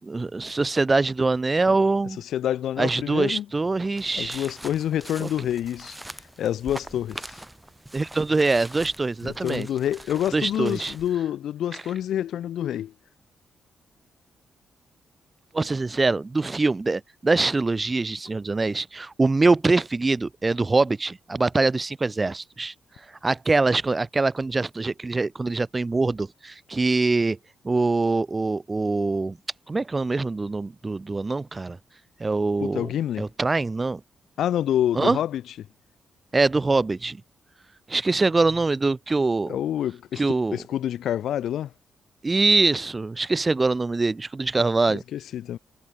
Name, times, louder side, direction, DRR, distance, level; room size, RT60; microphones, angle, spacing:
voice 1, 0.0-2.2 2.8-4.5 5.2-5.3 7.9-9.7 10.3-10.9 11.7-11.8 15.5-22.7 23.2-27.4 27.6-29.4 29.7-31.8 32.2-32.9 33.2-34.0 34.9-35.2 36.3-37.2 37.9-39.6 40.2-40.6 42.2-45.0, right 3 dB, 30° right, 3.3 m, -23 dB
voice 2, 2.3-3.4 4.2-6.0 6.4-7.3 9.2-12.9 32.6-33.3 34.4-35.4 39.5-40.2 40.5-41.7 44.9-45.6, left 11 dB, 75° left, 0.9 m, -27 dB
sound 1, 4.0-11.2, right 1 dB, 10° right, 4.8 m, -43 dB
supercardioid pair, 55°, 0 cm